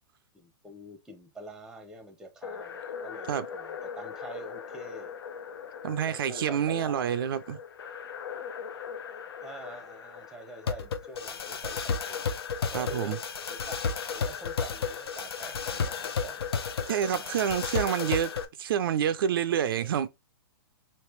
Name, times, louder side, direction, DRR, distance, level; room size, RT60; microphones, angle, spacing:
voice 1, 0.3-5.1 6.1-7.3 9.1-12.3 12.7-13.2 13.5-13.8 14.1-16.5 17.1-17.6 19.5-19.9, right 1 dB, 5° right, 0.7 m, -46 dB
sound 1, 2.4-18.4, left 6 dB, 80° left, 0.6 m, -35 dB
voice 2, 5.8-7.6 12.7-13.2 16.9-18.3 18.6-20.1, right 9 dB, 65° right, 0.4 m, -28 dB
3.2 x 2.9 x 3.1 m
hypercardioid pair, 130°, 13 cm